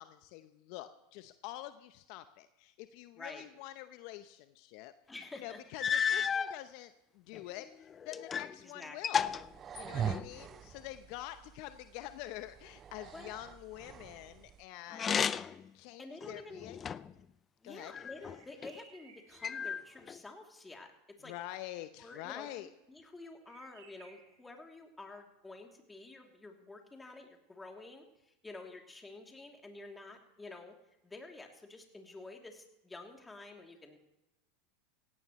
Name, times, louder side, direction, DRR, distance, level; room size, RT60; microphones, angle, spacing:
voice 1, 0.0-4.9 5.3-9.3 9.7-15.3 15.7-16.8 17.6-17.9 21.2-22.7, left 15 dB, 60° left, 11 dB, 0.8 m, -46 dB
voice 2, 3.2-3.5 5.1-5.6 8.6-9.2 9.8-10.2 13.1-13.4 16.0-16.7 17.6-20.9 21.2-21.3 22.0-30.8 31.0-34.0, left 2 dB, 10° left, 2 dB, 3.0 m, -50 dB
sound 1, 5.2-5.3 5.8-6.6 7.3-8.6 8.8-10.4 14.9-15.7 16.2-17.2 17.9-18.7 19.4-20.2, left 7 dB, 30° left, 0.5 m, -34 dB
sound 2, 9.2-14.6, right 9 dB, 35° right, 0.5 m, -43 dB
sound 3, 18.2-19.6 23.4-24.4, right 5 dB, 75° right, 7.2 m, -59 dB
17.5 x 17.0 x 3.2 m, 0.92 s
hypercardioid pair, 95°, 0 cm